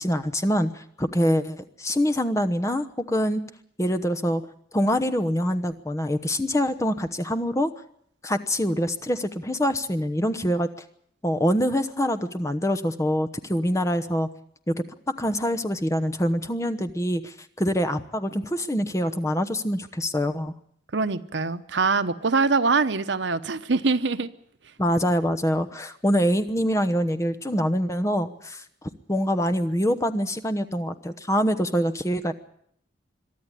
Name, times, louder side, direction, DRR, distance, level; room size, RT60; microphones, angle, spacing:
voice 1, 0.0-3.4 3.8-4.4 4.7-7.7 8.2-10.7 11.2-14.3 14.7-14.8 15.2-20.5 24.8-28.6 29.1-32.3, equal, 15° left, 1.0 m, -25 dB
voice 2, 20.9-24.3, right 4 dB, 85° right, 1.0 m, -23 dB
23.0 x 12.5 x 9.9 m
head